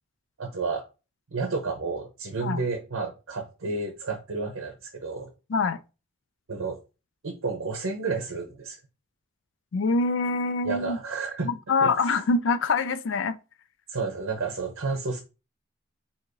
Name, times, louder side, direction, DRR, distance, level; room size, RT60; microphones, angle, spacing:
voice 1, 0.4-0.8 1.3-5.3 6.5-6.8 7.2-8.8 10.7-11.5 11.8-11.9 13.9-15.2, right 4 dB, 70° right, 0.7 m, -31 dB
voice 2, 5.5-5.8 9.7-11.0 11.4-13.4, left 3 dB, 60° left, 0.4 m, -25 dB
4.5 x 2.8 x 2.5 m
head